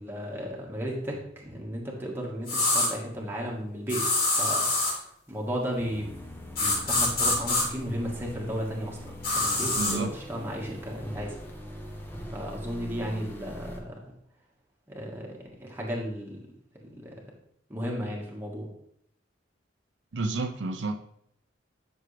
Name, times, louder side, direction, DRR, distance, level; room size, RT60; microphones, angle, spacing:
voice 1, 0.0-4.0 4.4-6.1 6.6-11.4 12.3-13.9 14.9-15.3 15.6-16.4 16.8-17.1 17.7-18.7, equal, 10° right, -2 dB, 1.7 m, -34 dB
sound 1, 2.5-2.9 3.9-5.0 6.6-7.6 9.2-10.0, left 2 dB, 50° left, 3.2 m, -25 dB
sound 2, 5.8-13.8, left 1 dB, 10° left, 1.1 m, -42 dB
voice 2, 9.8-10.1 20.1-21.0, right 3 dB, 70° right, 7 dB, 0.6 m, -30 dB
10.5 x 6.2 x 3.4 m, 0.71 s
head